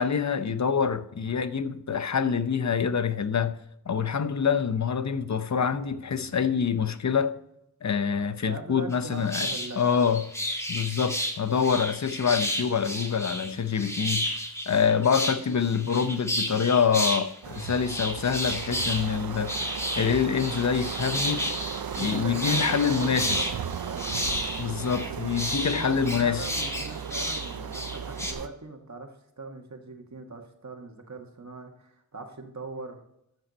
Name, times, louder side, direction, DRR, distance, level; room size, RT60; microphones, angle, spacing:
voice 1, 0.0-3.6 3.9-7.4 7.8-9.5 9.8-10.2 10.7-14.4 14.7-21.5 22.0-23.3 24.6-26.4, left 6 dB, 50° left, 0.8 m, -26 dB
voice 2, 8.4-9.8 22.0-23.5 23.8-24.8 25.7-33.0, right 3 dB, 50° right, 1.8 m, -41 dB
sound 1, 8.9-9.0 9.3-17.2 17.5-28.3, equal, 10° left, 1.8 m, -32 dB
sound 2, 17.4-28.5, right 7 dB, 75° right, 0.6 m, -36 dB
13.0 x 6.1 x 4.2 m
cardioid pair, 50°, 36 cm